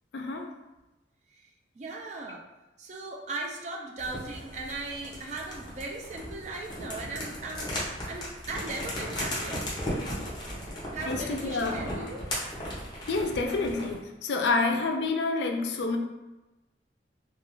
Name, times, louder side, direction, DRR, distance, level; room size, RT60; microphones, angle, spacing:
voice 1, 0.1-0.4 11.1-11.8 13.1-16.0, left 3 dB, 65° left, 3 dB, 0.4 m, -28 dB
voice 2, 1.8-2.4 2.8-9.6 10.9-12.3, right 3 dB, 40° right, 0 dB, 0.3 m, -38 dB
sound 1, 4.0-14.0, equal, 25° left, 0.6 m, -36 dB
2.4 x 2.3 x 2.9 m, 1.1 s
head